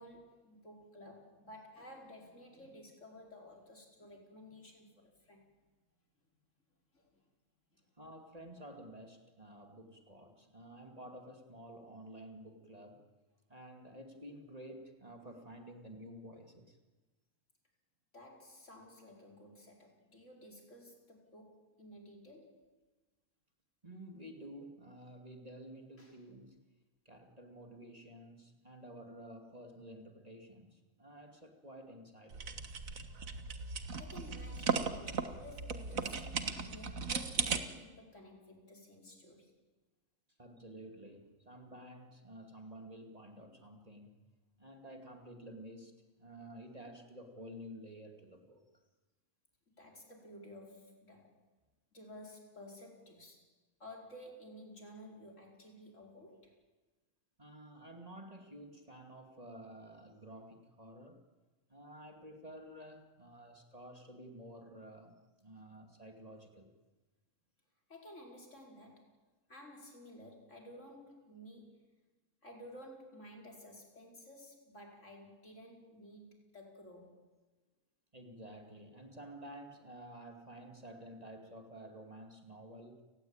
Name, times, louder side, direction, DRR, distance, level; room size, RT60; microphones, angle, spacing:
voice 1, 0.0-5.5 6.9-7.2 18.1-22.6 26.0-26.2 33.9-39.5 49.8-51.4 51.9-53.5 53.8-56.5 67.9-69.1 69.5-71.9 72.4-77.2, left 1 dB, 60° left, 1 dB, 5.2 m, -54 dB
voice 2, 8.0-13.1 13.5-16.8 23.8-26.7 27.0-32.6 40.4-44.2 44.6-48.6 57.4-61.2 61.7-66.8 78.1-83.0, right 1 dB, 25° right, 4 dB, 2.6 m, -51 dB
sound 1, 32.3-37.6, right 5 dB, 75° right, 1.9 m, -37 dB
30.0 x 19.5 x 8.9 m, 1.2 s
omnidirectional pair, 1.4 m